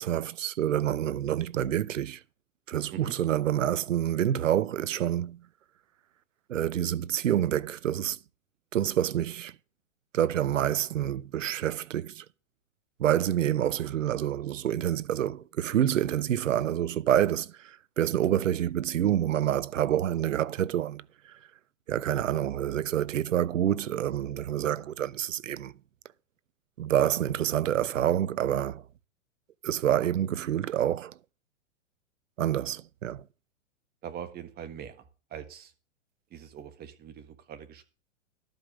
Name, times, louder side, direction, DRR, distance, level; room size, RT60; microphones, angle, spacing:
voice 1, 0.0-2.2 2.7-5.4 6.5-8.2 8.7-9.5 10.1-12.2 13.0-21.0 21.9-25.7 26.8-28.8 29.6-31.1 32.4-33.2, right 11 dB, 90° right, 0.7 m, -27 dB
voice 2, 34.0-35.0 35.3-35.7 36.3-37.9, right 9 dB, 25° right, 1.5 m, -42 dB
12.0 x 5.2 x 7.3 m
hypercardioid pair, 125°, 37 cm